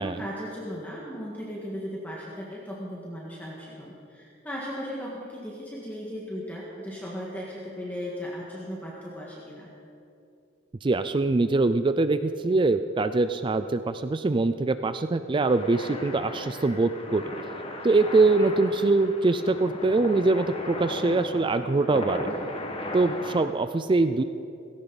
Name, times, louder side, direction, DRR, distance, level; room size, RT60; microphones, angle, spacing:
voice 1, 0.0-9.7, equal, 10° left, -5 dB, 1.7 m, -37 dB
voice 2, 10.8-17.2 17.8-22.3 22.9-24.2, right 3 dB, 25° right, 11 dB, 0.4 m, -23 dB
sound 1, 15.5-23.4, left 1 dB, 30° left, 1.4 m, -37 dB
18.0 x 16.5 x 4.1 m, 2.7 s
head